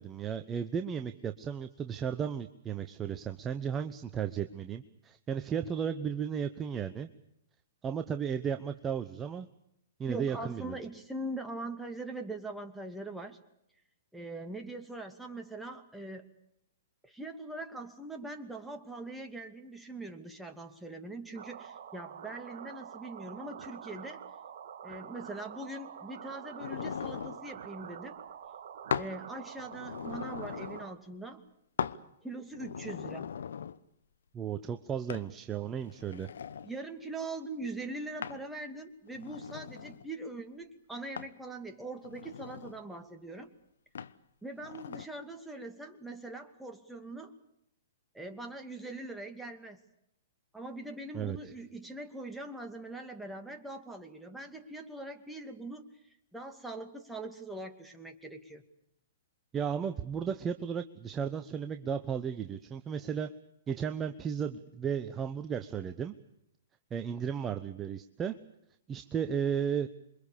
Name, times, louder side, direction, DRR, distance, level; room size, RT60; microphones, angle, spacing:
voice 1, 0.0-7.1 7.8-9.5 10.0-10.8 34.3-36.3 51.1-51.4 59.5-63.3 63.7-66.1 66.9-68.4 68.9-69.9, right 7 dB, 20° right, 9 dB, 1.0 m, -34 dB
voice 2, 10.1-13.4 14.1-16.3 17.0-24.2 24.8-28.2 28.9-31.4 32.2-33.3 36.6-43.5 44.4-47.3 48.1-49.8 50.5-55.9 56.3-58.6, right 2 dB, 5° right, 4 dB, 2.6 m, -42 dB
sound 1, 21.3-30.9, right 8 dB, 50° right, 1.8 m, -46 dB
sound 2, 26.6-27.4 28.9-29.2 29.6-30.9 31.8-32.0 32.5-33.8 35.1-35.3 35.9-36.7 38.2-38.5 39.1-40.1 41.2-41.4 42.0-42.8 44.0-44.2 44.6-45.1, left 7 dB, 65° left, 1.0 m, -39 dB
27.5 x 23.5 x 7.0 m, 0.78 s
figure-of-eight pair, 115°, 0 cm